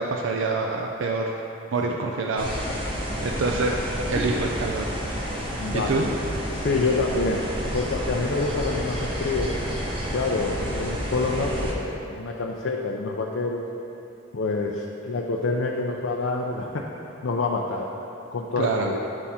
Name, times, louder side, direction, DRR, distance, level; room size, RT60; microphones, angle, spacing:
voice 1, 0.0-1.3 1.7-2.5 3.2-3.8 4.1-4.8 5.7-6.1 18.6-18.9, right 3 dB, 65° right, 0 dB, 0.4 m, -26 dB
sound 1, 2.4-11.7, equal, 25° right, 0.9 m, -30 dB
voice 2, 5.6-6.2 6.6-7.4 7.7-9.5 10.1-13.6 14.3-16.8 17.2-17.9 18.3-19.0, left 3 dB, 65° left, -1 dB, 0.5 m, -27 dB
9.7 x 3.5 x 4.2 m, 2.8 s
head